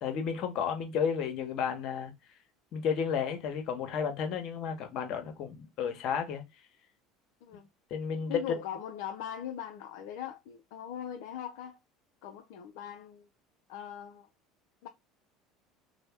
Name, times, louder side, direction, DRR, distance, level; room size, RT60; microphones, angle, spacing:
voice 1, 0.0-2.1 2.7-6.4 7.9-8.6, left 7 dB, 60° left, 0.8 m, -32 dB
voice 2, 8.3-11.8 12.2-13.3 13.7-14.3 14.8-14.9, left 9 dB, 75° left, 0.4 m, -40 dB
2.6 x 2.0 x 3.2 m
hypercardioid pair, 85°, 0 cm